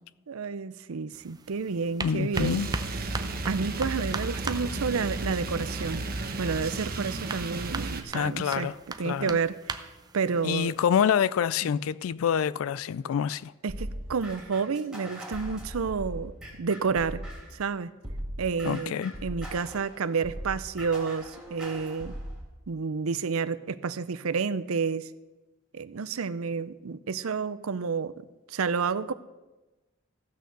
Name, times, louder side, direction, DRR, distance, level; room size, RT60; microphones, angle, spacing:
voice 1, 0.3-2.6 3.5-6.0 6.4-8.7 9.0-9.9 10.1-10.7 13.6-16.3 16.6-17.2 17.5-17.9 18.4-22.1 22.7-25.1 25.7-29.1, right 5 dB, 85° right, 0.6 m, -30 dB
sound 1, 1.1-10.9, right 3 dB, 20° right, 0.6 m, -40 dB
voice 2, 2.0-2.7 8.1-8.7 9.0-9.4 10.4-13.5 18.6-19.1, left 8 dB, 80° left, 0.3 m, -26 dB
sound 2, 2.3-8.0, right 2 dB, 45° right, 1.1 m, -33 dB
sound 3, 13.7-17.6 18.0-22.4, equal, 5° right, 3.3 m, -39 dB
15.0 x 6.4 x 6.8 m
head